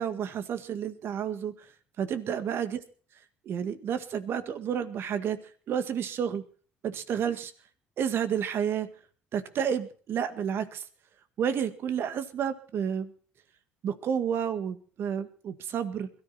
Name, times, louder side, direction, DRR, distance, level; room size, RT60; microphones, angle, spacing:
voice 1, 0.0-1.7 2.0-2.8 3.5-5.4 5.7-6.4 6.8-7.5 8.0-8.9 9.3-10.8 11.4-13.1 13.8-16.1, right 8 dB, 60° right, 11 dB, 1.9 m, -30 dB
21.5 x 14.0 x 4.3 m, 0.42 s
supercardioid pair, 75°, 5 cm